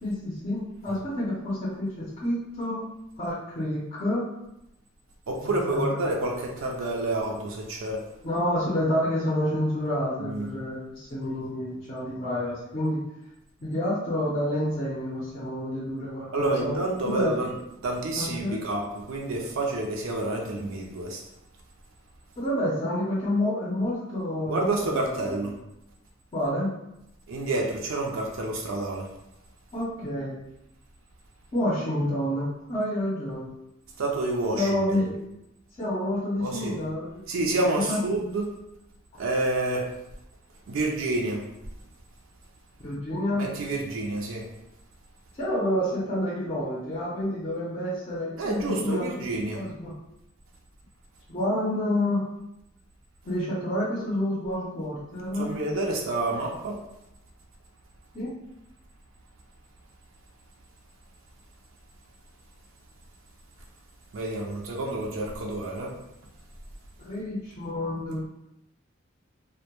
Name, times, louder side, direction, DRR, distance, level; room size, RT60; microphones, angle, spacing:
voice 1, 0.0-2.9 3.2-4.3 5.4-6.0 8.2-13.0 13.6-16.7 17.0-17.3 18.2-18.6 22.4-25.4 26.3-26.7 29.7-30.4 31.5-33.5 34.5-35.1 35.8-37.2 37.7-38.0 42.8-43.5 45.4-49.3 49.5-49.9 51.3-52.3 53.2-55.5 58.1-58.3 67.0-68.3, left 1 dB, 30° left, -7 dB, 0.5 m, -29 dB
voice 2, 5.3-8.0 10.2-10.5 16.3-17.6 17.8-21.2 24.5-25.5 27.3-29.1 34.0-34.7 36.4-36.8 37.3-38.5 39.2-39.9 40.7-41.4 43.4-44.4 48.4-49.6 55.4-56.8 64.1-65.9, right 2 dB, 70° right, 0 dB, 0.4 m, -28 dB
2.1 x 2.1 x 2.9 m, 0.87 s
head